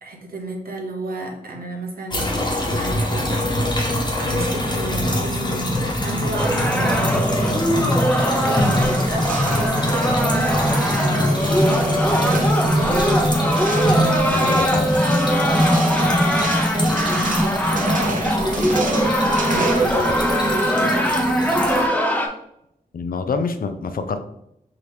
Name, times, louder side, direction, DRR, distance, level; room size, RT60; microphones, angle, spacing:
voice 1, 0.0-3.9 4.1-8.0 8.3-13.4 14.4-14.5 15.8-18.8 19.5-21.2, right 2 dB, 90° right, 1 dB, 0.9 m, -31 dB
sound 1, 2.1-21.9, equal, 30° left, 1.1 m, -23 dB
sound 2, 6.3-22.3, equal, 10° left, 0.7 m, -22 dB
sound 3, 8.6-20.5, right 2 dB, 65° right, 0.8 m, -31 dB
voice 2, 14.3-15.0 22.9-24.2, left 4 dB, 80° left, 9 dB, 0.5 m, -26 dB
4.8 x 2.9 x 3.4 m, 0.77 s
wide cardioid pair, 90°, 15 cm